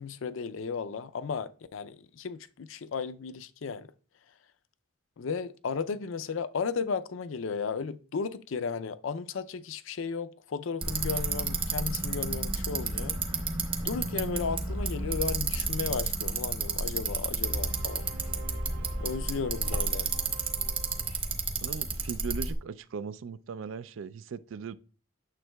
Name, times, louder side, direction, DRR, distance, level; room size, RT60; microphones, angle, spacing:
voice 1, 0.0-3.9 5.2-13.2 13.8-18.0 19.0-20.1, left 5 dB, 70° left, 0.4 m, -34 dB
Bicycle, 10.8-22.5, right 4 dB, 25° right, 1.1 m, -31 dB
sound 1, 17.4-21.3, right 1 dB, 85° right, 2.8 m, -40 dB
voice 2, 21.6-24.8, right 5 dB, 70° right, 0.4 m, -38 dB
9.1 x 7.1 x 2.3 m
head